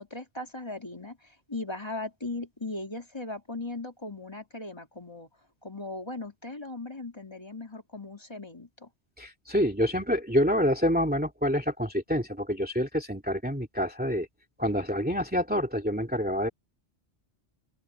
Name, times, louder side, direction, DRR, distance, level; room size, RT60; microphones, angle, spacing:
voice 1, 0.0-5.3 5.6-8.9, left 2 dB, 20° left, 3.0 m, -38 dB
voice 2, 9.2-14.3 14.6-16.5, equal, 10° right, 2.5 m, -27 dB
open air
omnidirectional pair, 1.2 m